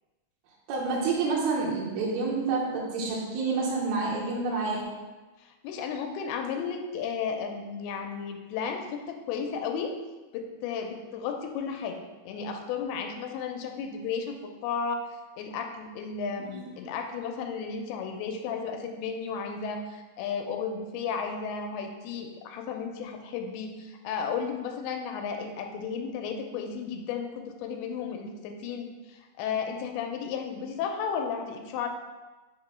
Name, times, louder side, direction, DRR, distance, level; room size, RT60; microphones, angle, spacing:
voice 1, 0.7-4.8 16.4-16.6, right 4 dB, 80° right, -3 dB, 2.6 m, -28 dB
voice 2, 5.4-9.9 10.3-15.1 15.4-31.9, left 6 dB, 90° left, 4 dB, 2.6 m, -34 dB
6.0 x 2.9 x 5.5 m, 1.2 s
omnidirectional pair, 4.4 m